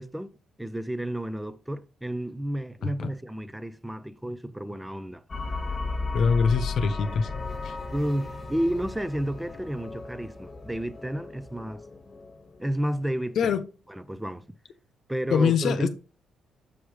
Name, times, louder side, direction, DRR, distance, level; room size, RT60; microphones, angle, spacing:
voice 1, 0.0-5.2 7.9-11.9 12.6-13.6 13.9-14.4 15.1-15.9, right 1 dB, 5° right, 0.6 m, -31 dB
sound 1, 5.3-13.3, left 3 dB, 30° left, 1.5 m, -35 dB
voice 2, 6.1-7.3 7.6-7.7 13.4-13.6 15.3-15.9, left 6 dB, 65° left, 0.9 m, -23 dB
7.1 x 3.3 x 4.7 m
cardioid pair, 90°, 0 cm